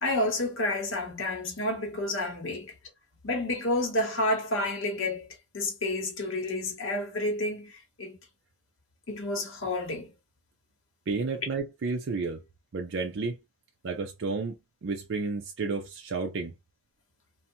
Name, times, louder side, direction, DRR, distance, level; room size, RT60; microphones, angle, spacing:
voice 1, 0.0-2.7 3.2-5.3 5.5-8.2 9.1-10.1, left 2 dB, 60° left, 1.0 m, -30 dB
voice 2, 11.1-12.4 12.7-13.4 13.8-14.6 14.8-16.5, right 4 dB, 55° right, 0.4 m, -31 dB
2.7 x 2.1 x 2.7 m
head